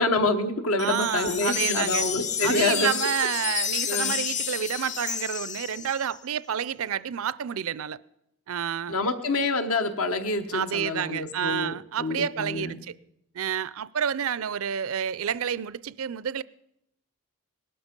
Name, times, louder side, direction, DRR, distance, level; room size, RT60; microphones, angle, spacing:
voice 1, 0.0-2.9 3.9-4.2 8.9-12.8, left 2 dB, 80° left, 1.2 m, -27 dB
sound 1, 0.8-6.2, left 8 dB, 30° left, 0.5 m, -30 dB
voice 2, 0.8-2.1 2.4-8.0 8.5-9.0 10.5-12.9 13.3-16.4, right 8 dB, 70° right, 0.5 m, -29 dB
19.5 x 12.5 x 5.3 m
head